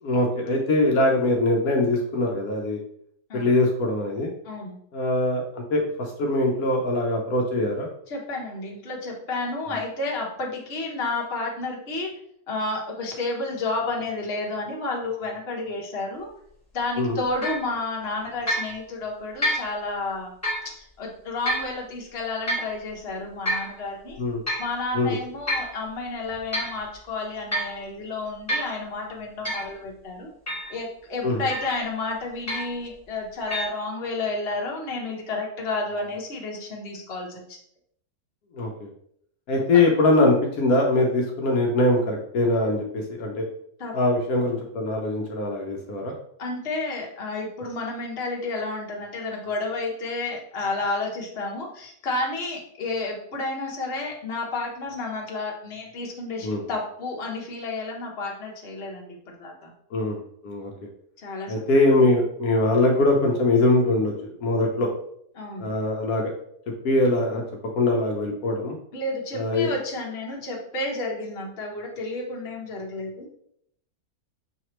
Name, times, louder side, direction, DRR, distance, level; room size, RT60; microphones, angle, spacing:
voice 1, 0.0-2.8 3.3-4.3 4.9-7.9 17.0-17.2 24.2-24.4 24.9-25.1 31.2-31.4 38.5-38.9 39.5-43.5 43.9-46.2 56.4-56.6 59.9-60.2 60.4-60.7 61.5-64.9 65.6-66.3 66.8-67.4 67.8-68.8 69.3-69.7, left 2 dB, 75° left, 0 dB, 1.2 m, -22 dB
voice 2, 4.4-4.8 8.1-12.1 12.5-16.3 16.7-20.3 20.6-24.2 24.6-30.3 30.7-37.6 43.8-44.0 46.4-59.7 61.2-61.6 65.3-65.7 68.9-73.3, left 2 dB, 45° left, -1 dB, 1.2 m, -31 dB
sound 1, 17.4-17.7 18.5-18.7 19.4-19.7 20.4-20.7 21.5-21.7 22.5-22.7 23.5-23.7 24.5-24.7 25.5-25.7 26.3-26.8 27.5-27.8 28.5-28.7 29.4-29.7 30.5-30.7 31.5-31.8 32.5-32.8 33.5-33.7, equal, 10° left, 1.5 m, -28 dB
5.7 x 3.1 x 3.0 m, 0.69 s
omnidirectional pair, 1.6 m